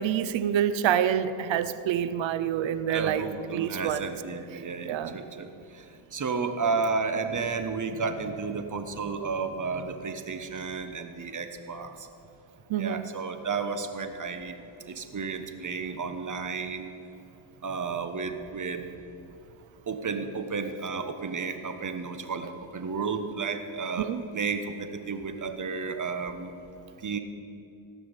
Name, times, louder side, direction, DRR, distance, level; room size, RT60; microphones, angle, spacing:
voice 1, 0.0-3.3 3.5-4.0 4.9-5.2 12.7-13.1 24.0-24.2, right 9 dB, 65° right, 13 dB, 0.9 m, -27 dB
voice 2, 2.9-12.1 12.8-14.5 14.9-16.9 17.6-18.9 19.9-26.5 27.0-27.2, right 4 dB, 35° right, 8 dB, 1.4 m, -32 dB
16.5 x 6.1 x 9.1 m, 2.7 s
cardioid pair, 80°, 50 cm